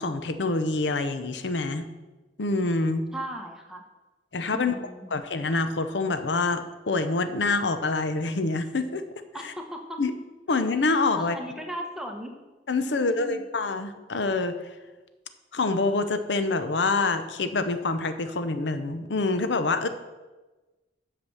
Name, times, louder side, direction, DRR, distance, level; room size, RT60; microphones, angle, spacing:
voice 1, 0.0-1.8 2.4-3.1 4.3-4.7 5.1-9.0 9.4-9.5 10.0-10.1 10.5-11.4 12.7-14.5 15.5-19.9, left 3 dB, 85° left, 10 dB, 0.7 m, -26 dB
voice 2, 3.1-3.8 4.5-5.1 9.3-10.0 11.1-12.3 12.9-13.4, right 1 dB, 5° right, 2 dB, 1.0 m, -37 dB
8.0 x 5.9 x 7.0 m, 1.2 s
head